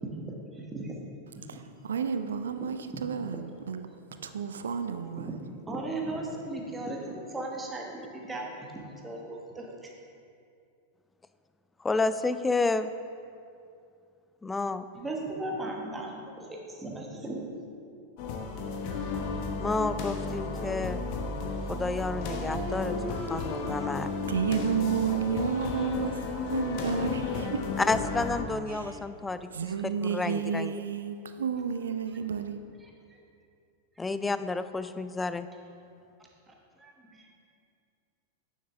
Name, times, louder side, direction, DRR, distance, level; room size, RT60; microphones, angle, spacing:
voice 1, 0.2-0.9 1.5-1.6 2.6-2.7 2.9-3.0 5.2-9.7 14.9-17.5 32.8-33.2 36.5-37.3, right 2 dB, 10° right, 1.2 m, -37 dB
voice 2, 1.5-3.9 4.2-5.3 24.3-27.6 28.7-29.0 29.5-32.6, right 6 dB, 65° right, 0.4 m, -31 dB
voice 3, 11.8-12.9 14.4-14.8 19.6-21.0 21.7-24.1 27.8-29.5 29.8-30.7 34.0-35.5, left 3 dB, 10° left, 0.3 m, -30 dB
sound 1, 18.2-28.4, left 3 dB, 45° left, 0.9 m, -33 dB
9.4 x 7.1 x 3.5 m
figure-of-eight pair, 90°, 0 cm